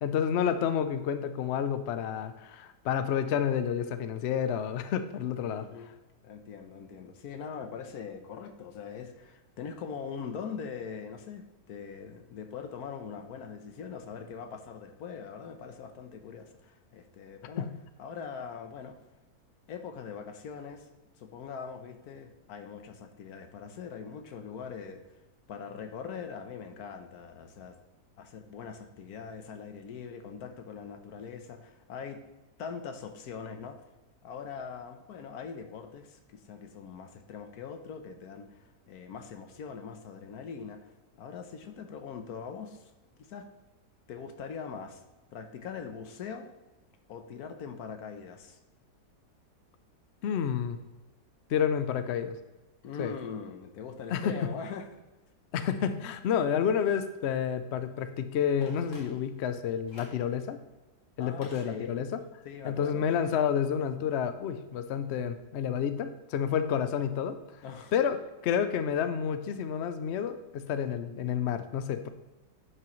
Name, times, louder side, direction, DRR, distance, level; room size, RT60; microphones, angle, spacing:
voice 1, 0.0-5.7 17.6-17.7 50.2-50.8 51.5-52.4 53.0-53.1 54.1-54.4 55.5-60.6 61.2-62.2 62.6-67.4 67.9-68.2 68.4-72.1, left 8 dB, 80° left, 10 dB, 0.5 m, -29 dB
voice 2, 5.4-5.9 6.2-17.7 18.0-19.0 19.7-20.9 21.2-25.0 25.5-27.8 28.2-32.2 32.6-33.8 34.2-40.9 41.2-42.9 43.2-43.5 44.1-45.0 45.3-46.5 47.1-48.6 52.8-54.9 61.2-62.0 62.4-63.1 67.6-67.9, left 6 dB, 65° left, 7 dB, 1.3 m, -42 dB
Telephone, 58.6-59.5 59.9-60.3 61.4-62.3 62.6-62.7, left 1 dB, 45° left, 2.2 m, -51 dB
11.0 x 6.0 x 3.1 m, 1.1 s
omnidirectional pair, 1.8 m